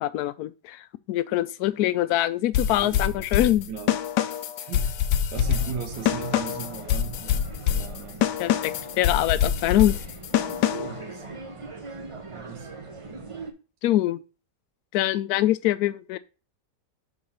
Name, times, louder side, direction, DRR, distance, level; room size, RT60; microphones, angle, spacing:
voice 1, 0.0-3.7 8.4-10.0 13.8-14.2 14.9-16.2, left 14 dB, 70° left, 1.0 m, -24 dB
sound 1, 2.5-11.0, left 10 dB, 85° left, 1.3 m, -25 dB
voice 2, 2.8-3.2 3.7-4.0 4.6-5.0 5.3-8.2 10.7-11.2 12.3-12.7, right 6 dB, 85° right, 1.5 m, -37 dB
sound 2, 5.3-13.5, right 3 dB, 30° right, 0.6 m, -41 dB
6.1 x 4.0 x 5.6 m
omnidirectional pair, 1.8 m